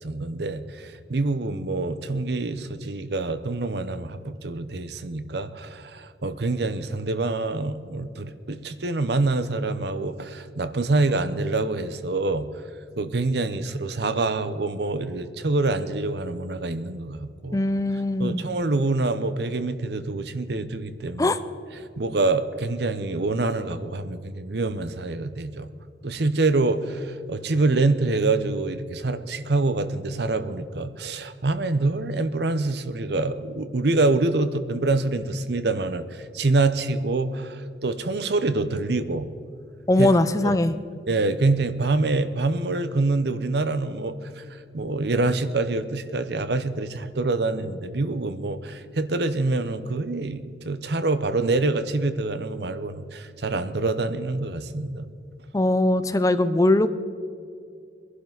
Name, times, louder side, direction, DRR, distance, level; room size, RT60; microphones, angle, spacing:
voice 1, 0.0-12.5 13.0-17.6 18.2-21.4 21.8-25.7 26.0-39.3 40.0-40.1 40.4-40.6 41.1-55.1, right 3 dB, 65° right, 11 dB, 0.8 m, -26 dB
voice 2, 17.5-18.5 21.2-21.4 39.9-40.7 55.5-56.9, left 1 dB, 20° left, 12 dB, 0.5 m, -21 dB
22.5 x 11.5 x 4.0 m, 2.4 s
head